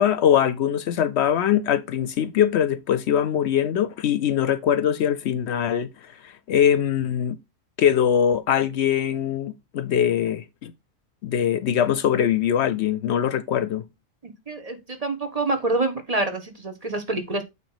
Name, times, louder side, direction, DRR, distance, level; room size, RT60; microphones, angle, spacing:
voice 1, 0.0-7.4 7.8-10.7 11.2-13.8, left 9 dB, 70° left, 0.8 m, -22 dB
voice 2, 14.2-17.4, right 2 dB, 30° right, 1.3 m, -27 dB
8.9 x 3.2 x 4.9 m
omnidirectional pair, 1.3 m